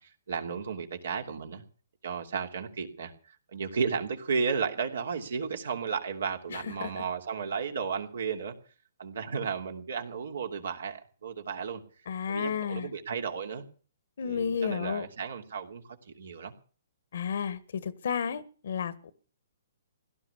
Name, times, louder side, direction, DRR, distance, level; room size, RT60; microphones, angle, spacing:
voice 1, 0.0-1.6 2.0-8.5 9.0-11.8 12.3-13.6 14.2-16.5, right 5 dB, 75° right, 5 dB, 2.7 m, -34 dB
voice 2, 6.5-6.9 12.1-12.9 14.2-15.0 17.1-19.1, left 7 dB, 70° left, 17 dB, 1.4 m, -32 dB
17.0 x 11.5 x 7.1 m, 0.40 s
hypercardioid pair, 150°, 0 cm